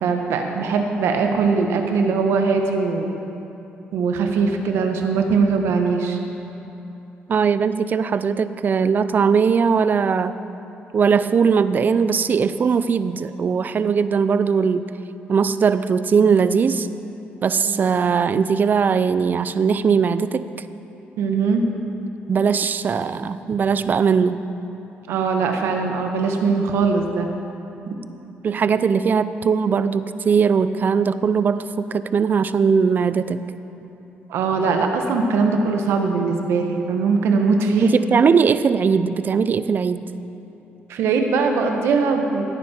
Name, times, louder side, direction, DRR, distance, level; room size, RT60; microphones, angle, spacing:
voice 1, 0.0-3.1 3.9-6.2 17.7-17.8 21.2-21.7 25.1-27.3 34.3-37.9 40.9-42.5, right 4 dB, 80° right, 4 dB, 1.2 m, -21 dB
voice 2, 7.3-10.4 10.9-14.9 15.3-16.9 17.4-20.4 22.3-24.5 28.4-33.4 37.8-40.1, right 6 dB, 45° right, 13 dB, 0.5 m, -19 dB
16.0 x 9.5 x 4.4 m, 3.0 s
cardioid pair, 80°, 4 cm